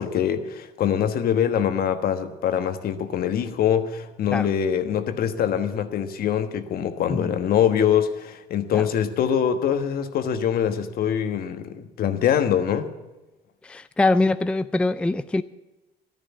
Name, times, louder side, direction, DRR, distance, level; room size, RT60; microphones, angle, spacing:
voice 1, 0.0-12.9, left 9 dB, 60° left, 9 dB, 1.3 m, -24 dB
voice 2, 13.6-15.4, left 2 dB, 5° left, 13 dB, 0.4 m, -23 dB
12.5 x 10.5 x 8.3 m, 1.0 s
cardioid pair, 110°, 17 cm